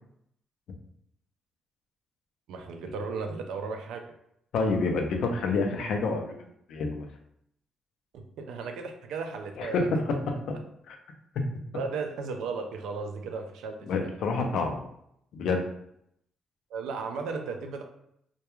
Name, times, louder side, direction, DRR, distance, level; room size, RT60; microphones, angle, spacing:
voice 1, 2.5-4.1 8.1-9.9 11.7-14.1 16.7-17.8, right 4 dB, 85° right, 4 dB, 0.3 m, -35 dB
voice 2, 4.5-6.4 6.7-7.1 9.6-9.8 10.9-11.0 13.9-14.8 15.3-15.6, left 4 dB, 75° left, 3 dB, 0.4 m, -28 dB
2.2 x 2.2 x 2.9 m, 0.74 s
cardioid pair, 90°, 0 cm